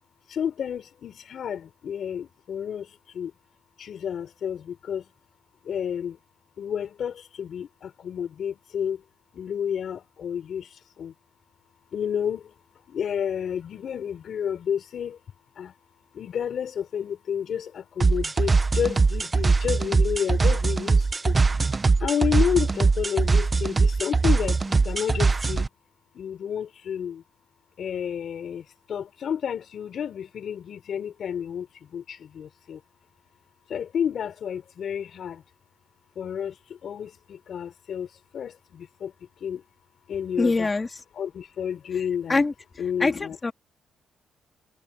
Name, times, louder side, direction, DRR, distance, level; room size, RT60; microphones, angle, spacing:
voice 1, 0.3-2.9 3.1-3.3 3.8-5.0 5.7-6.2 6.6-9.0 9.3-10.7 11.0-11.1 11.9-12.4 12.9-15.2 15.6-15.7 16.1-21.3 22.0-25.7 26.1-27.2 27.8-31.7 31.9-32.8 33.7-35.4 36.2-36.5 36.8-38.1 38.3-39.1 39.4-39.6 40.1-40.7 41.2-42.4 42.8-43.5, left 8 dB, 60° left, 4.8 m, -30 dB
sound 1, 18.0-25.7, right 4 dB, 25° right, 0.9 m, -21 dB
voice 2, 40.4-40.9 42.3-42.5 43.0-43.5, left 3 dB, 25° left, 2.3 m, -23 dB
cardioid pair, 90°, 0 cm